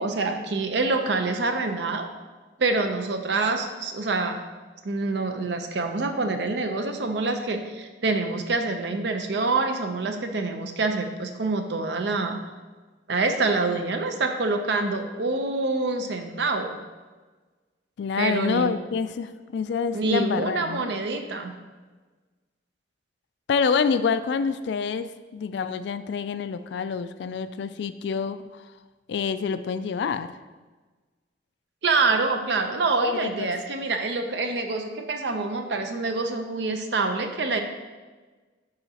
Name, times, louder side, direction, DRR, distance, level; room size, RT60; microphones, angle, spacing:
voice 1, 0.0-2.1 2.6-4.4 4.8-12.4 13.1-16.8 18.2-18.7 19.9-21.5 31.8-37.6, right 3 dB, 70° right, 6 dB, 0.6 m, -26 dB
voice 2, 18.0-20.9 23.5-28.6 29.1-30.3 33.0-33.5, left 6 dB, 70° left, 12 dB, 0.3 m, -27 dB
10.5 x 3.9 x 2.8 m, 1.3 s
head